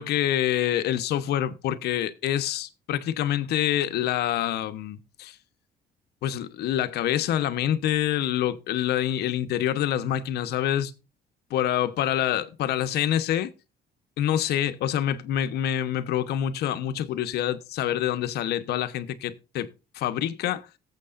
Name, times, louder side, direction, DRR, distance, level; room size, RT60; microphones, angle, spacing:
voice 1, 0.0-5.4 6.2-10.9 11.5-13.5 14.2-20.7, left 11 dB, 75° left, 1.0 m, -26 dB
18.5 x 7.6 x 2.5 m
cardioid pair, 110°, 17 cm